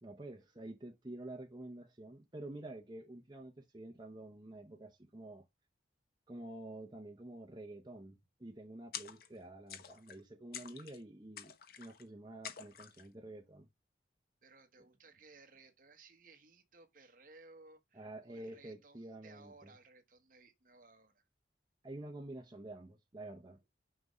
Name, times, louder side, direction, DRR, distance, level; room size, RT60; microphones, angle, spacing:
voice 1, 0.0-5.4 6.3-13.7 17.9-19.7 21.8-23.6, right 1 dB, 25° right, 0.8 m, -49 dB
sound 1, 8.9-9.4 9.7-10.2 10.5-11.0 11.4-12.0 12.4-13.1, left 8 dB, 55° left, 0.7 m, -48 dB
voice 2, 14.4-21.2, right 3 dB, 50° right, 1.1 m, -60 dB
6.0 x 5.2 x 3.1 m
head